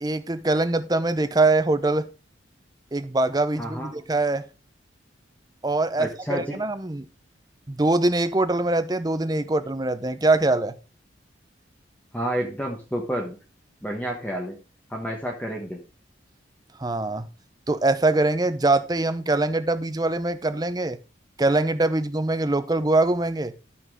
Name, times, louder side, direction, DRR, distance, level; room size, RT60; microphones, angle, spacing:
voice 1, 0.0-2.1 2.9-4.4 5.6-7.0 7.7-10.7 16.8-17.3 17.7-21.0 21.4-23.5, right 2 dB, 20° right, 0.6 m, -23 dB
voice 2, 3.6-3.9 6.0-6.6 12.1-13.4 13.8-14.5 14.9-15.8, equal, 10° left, 1.1 m, -30 dB
12.0 x 6.0 x 3.5 m
head